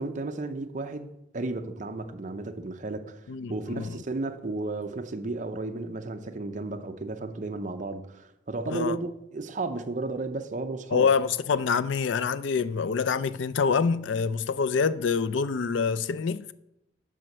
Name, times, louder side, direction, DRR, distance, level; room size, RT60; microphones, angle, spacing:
voice 1, 0.0-3.2 3.5-11.1, right 2 dB, 40° right, 0.6 m, -33 dB
voice 2, 3.3-4.0 8.7-9.0 10.9-16.5, left 5 dB, 75° left, 0.4 m, -26 dB
7.5 x 5.1 x 6.6 m
head